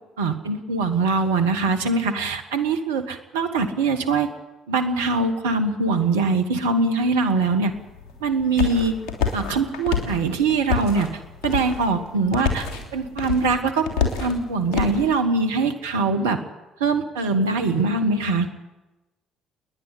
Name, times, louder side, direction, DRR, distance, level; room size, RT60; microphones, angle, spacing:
voice 1, 0.2-4.3 4.7-7.7 8.2-8.9 9.3-16.4 16.8-18.5, right 3 dB, 85° right, 7 dB, 1.3 m, -22 dB
sound 1, 7.7-15.0, left 6 dB, 70° left, 3.2 m, -28 dB
29.0 x 10.5 x 8.4 m, 1.0 s
hypercardioid pair, 50°, 0 cm